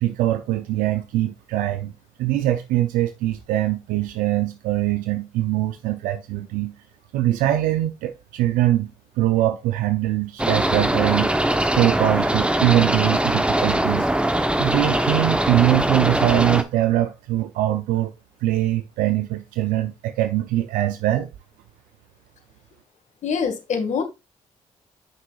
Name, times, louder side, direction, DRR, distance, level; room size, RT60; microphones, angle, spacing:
voice 1, 0.0-1.9 2.2-6.7 7.1-8.9 9.2-11.5 11.7-14.1 14.6-18.1 18.4-21.3, right 14 dB, 85° right, 0.5 m, -22 dB
sound 1, 10.4-16.6, right 1 dB, 10° right, 0.9 m, -21 dB
voice 2, 23.2-24.0, left 6 dB, 65° left, 1.7 m, -24 dB
7.7 x 6.0 x 2.4 m
supercardioid pair, 50°, 14 cm